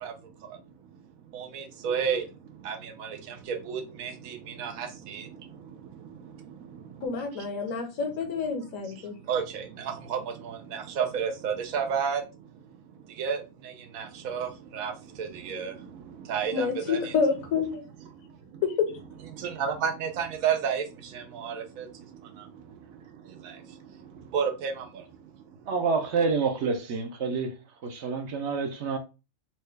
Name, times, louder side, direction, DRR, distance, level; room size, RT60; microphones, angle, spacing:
voice 1, 0.0-7.5 9.0-17.1 18.2-18.6 19.3-25.6, right 7 dB, 85° right, 1.1 m, -33 dB
voice 2, 7.0-9.1 16.5-17.8 18.6-18.9, left 5 dB, 75° left, 1.3 m, -28 dB
voice 3, 25.7-27.5 27.8-29.0, right 4 dB, 65° right, 0.8 m, -28 dB
4.3 x 2.2 x 3.2 m
omnidirectional pair, 1.4 m